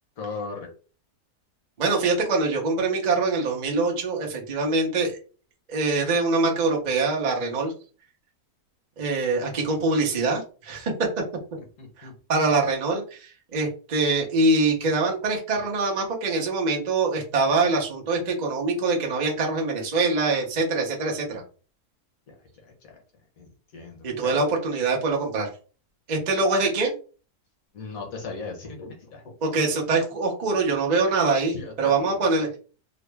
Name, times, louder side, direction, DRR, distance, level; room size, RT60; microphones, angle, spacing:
voice 1, 0.2-0.7 11.6-12.1 22.6-22.9 23.4-24.5 27.7-29.3 31.5-32.4, left 4 dB, 60° left, 2 dB, 1.4 m, -38 dB
voice 2, 1.8-5.1 5.7-7.7 9.0-10.9 12.0-21.4 24.0-25.5 26.1-26.9 29.4-32.5, right 3 dB, 40° right, -1 dB, 0.6 m, -24 dB
3.8 x 2.0 x 3.3 m, 0.37 s
omnidirectional pair, 1.7 m